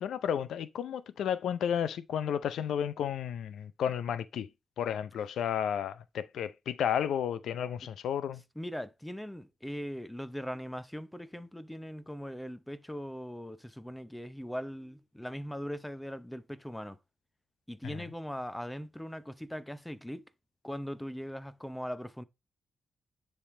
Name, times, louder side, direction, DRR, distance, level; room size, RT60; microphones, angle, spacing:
voice 1, 0.0-4.5 4.8-8.4, left 9 dB, 85° left, 0.4 m, -32 dB
voice 2, 8.6-17.0 17.7-20.2 20.6-22.2, equal, 5° left, 0.6 m, -40 dB
9.9 x 3.4 x 3.2 m
cardioid pair, 90°, 0 cm